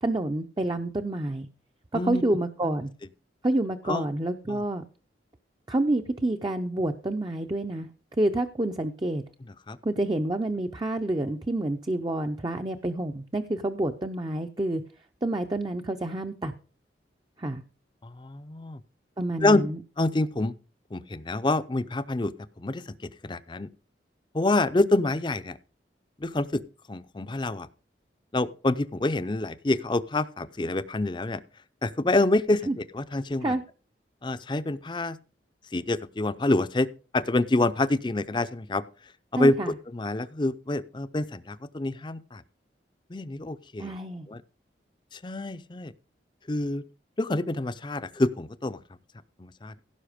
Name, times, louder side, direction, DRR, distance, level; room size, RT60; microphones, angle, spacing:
voice 1, 0.0-1.5 1.9-2.9 3.4-4.8 5.7-7.9 8.2-9.2 9.8-14.8 15.2-16.5 17.4-17.6 19.2-19.8 32.7-32.8 33.4-33.6 39.4-39.7 43.8-44.3, right 1 dB, 25° right, 0.6 m, -28 dB
voice 2, 1.9-2.4 3.9-4.1 4.5-4.6 9.7-9.8 18.0-18.8 19.4-19.6 20.0-20.5 20.9-23.7 24.3-25.6 26.2-26.6 26.9-27.7 28.3-31.4 31.8-33.6 34.2-35.2 35.7-38.8 39.3-42.4 43.1-43.9 44.3-44.4 45.1-45.9 46.5-46.8 47.2-48.8 49.4-49.8, left 2 dB, 25° left, 0.5 m, -27 dB
16.5 x 5.7 x 5.1 m
head